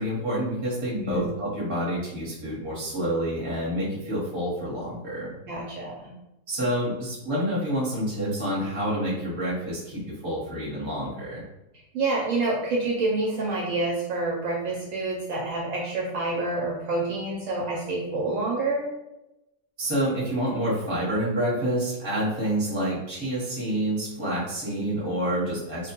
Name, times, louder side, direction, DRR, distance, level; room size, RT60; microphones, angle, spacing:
voice 1, 0.0-5.3 6.5-11.4 19.8-25.9, right 1 dB, 20° right, -7 dB, 0.8 m, -28 dB
voice 2, 0.9-1.3 5.5-6.1 11.9-18.9, right 2 dB, 70° right, -3 dB, 0.9 m, -28 dB
2.3 x 2.2 x 2.9 m, 0.93 s
omnidirectional pair, 1.5 m